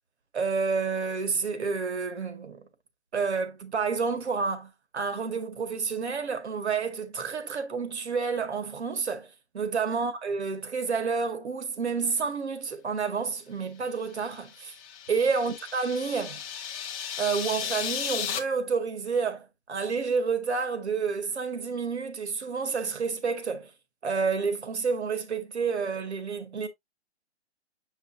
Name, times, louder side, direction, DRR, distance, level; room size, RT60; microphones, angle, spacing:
voice 1, 0.3-2.6 3.1-9.3 9.5-14.7 15.1-16.4 17.2-23.7 24.0-26.7, right 5 dB, 70° right, 1.8 m, -29 dB
sound 1, 14.2-18.4, left 8 dB, 15° left, 0.8 m, -35 dB
7.5 x 5.5 x 2.5 m
hypercardioid pair, 145°, 34 cm